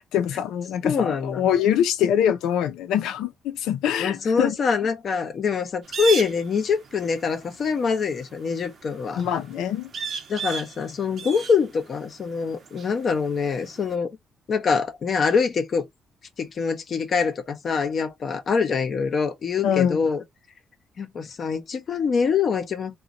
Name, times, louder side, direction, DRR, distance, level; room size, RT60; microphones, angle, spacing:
voice 1, 0.1-4.5 9.2-9.9 19.6-20.0, left 9 dB, 90° left, 0.5 m, -24 dB
voice 2, 0.8-1.4 4.0-9.2 10.3-14.1 14.5-15.8 16.4-20.2 21.0-23.0, left 5 dB, 50° left, 0.6 m, -24 dB
sound 1, 5.8-13.9, right 6 dB, 55° right, 0.7 m, -36 dB
2.9 x 2.2 x 2.5 m
cardioid pair, 90°, 0 cm